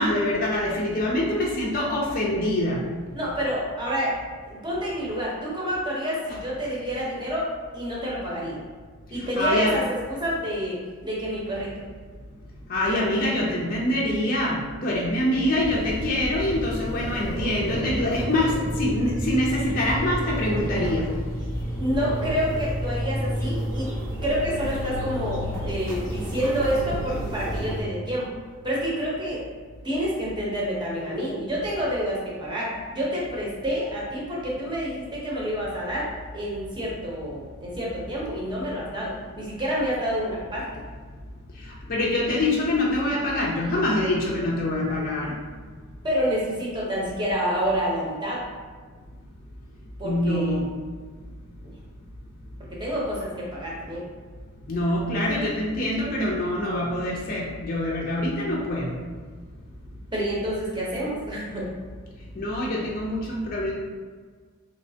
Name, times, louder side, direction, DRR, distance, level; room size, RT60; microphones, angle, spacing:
voice 1, 0.0-2.8 9.2-9.7 12.7-21.1 41.9-45.3 50.0-50.6 54.7-58.9 62.4-63.7, left 1 dB, 40° left, -4 dB, 0.4 m, -25 dB
voice 2, 3.1-4.1 4.5-7.5 7.7-8.6 9.1-11.7 21.8-23.9 24.2-28.3 28.6-29.4 29.8-40.7 46.0-48.4 50.0-50.6 52.7-54.1 60.1-61.7, equal, 20° right, -5 dB, 0.8 m, -28 dB
sound 1, 15.6-27.8, equal, 15° left, 0.9 m, -30 dB
3.2 x 3.1 x 2.7 m, 1.5 s
head